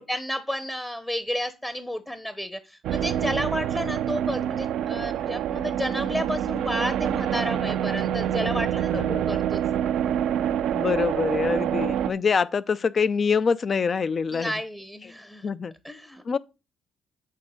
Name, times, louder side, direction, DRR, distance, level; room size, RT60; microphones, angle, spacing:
voice 1, 0.0-9.6 14.3-15.5 15.8-16.2, equal, 10° left, 0.9 m, -31 dB
sound 1, 2.8-12.1, right 10 dB, 80° right, 0.5 m, -26 dB
voice 2, 8.9-9.3 10.7-14.6 15.0-15.1 15.4-15.7 16.3-16.4, left 5 dB, 45° left, 0.5 m, -25 dB
8.4 x 3.6 x 6.4 m
cardioid pair, 90°, 0 cm